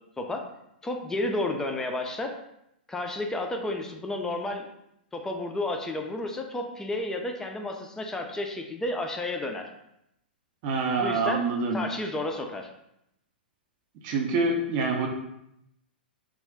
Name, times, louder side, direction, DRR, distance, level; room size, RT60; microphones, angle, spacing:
voice 1, 0.2-0.5 0.8-2.4 2.9-4.7 5.1-9.7 11.0-12.7, left 2 dB, 10° left, 3 dB, 0.3 m, -31 dB
voice 2, 10.6-11.8 14.0-15.1, right 3 dB, 45° right, 0 dB, 0.5 m, -26 dB
2.4 x 2.1 x 3.5 m, 0.80 s
hypercardioid pair, 115°, 6 cm